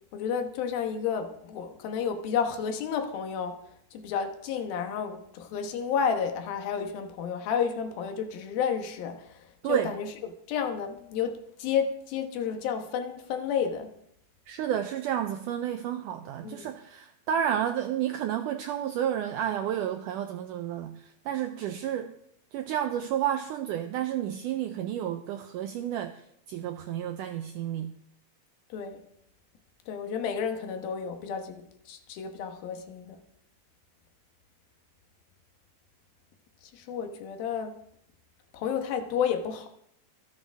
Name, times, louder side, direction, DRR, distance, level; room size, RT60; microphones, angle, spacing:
voice 1, 0.1-3.6 3.9-9.4 9.7-10.1 10.5-13.9 16.4-16.7 28.7-29.0 29.9-33.2 36.7-37.8 38.5-39.7, left 7 dB, 75° left, 6 dB, 3.0 m, -31 dB
voice 2, 14.5-22.1 22.5-26.2 26.5-27.9, right 10 dB, 85° right, 8 dB, 1.8 m, -31 dB
25.5 x 8.8 x 3.5 m, 0.73 s
omnidirectional pair, 4.3 m